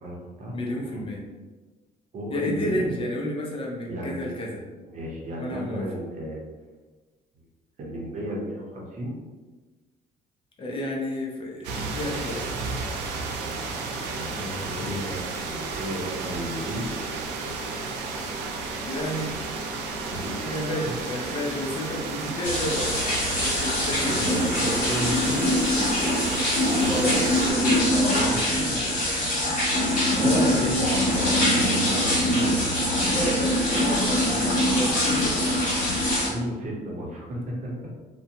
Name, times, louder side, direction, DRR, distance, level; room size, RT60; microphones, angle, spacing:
voice 1, 0.0-1.0 2.1-2.9 3.9-4.4 4.9-6.4 7.8-9.1 13.9-16.9 20.1-20.4 20.8-21.0 24.1-25.5 26.6-27.2 27.5-29.1 29.4-29.5 30.1-32.8 35.7-37.9, equal, 45° right, -3 dB, 0.8 m, -33 dB
voice 2, 0.5-1.2 2.3-4.6 5.4-5.8 10.6-12.4 14.7-14.9 18.9-19.6 20.4-22.9 23.4-24.3 26.8-27.8 30.2-31.3 33.0-35.7, equal, 30° left, -1 dB, 0.5 m, -31 dB
sound 1, 11.6-27.5, right 3 dB, 85° right, 0.4 m, -33 dB
sound 2, 22.4-36.3, left 1 dB, 50° left, 1.4 m, -23 dB
2.5 x 2.2 x 2.7 m, 1.3 s
cardioid pair, 110°, 17 cm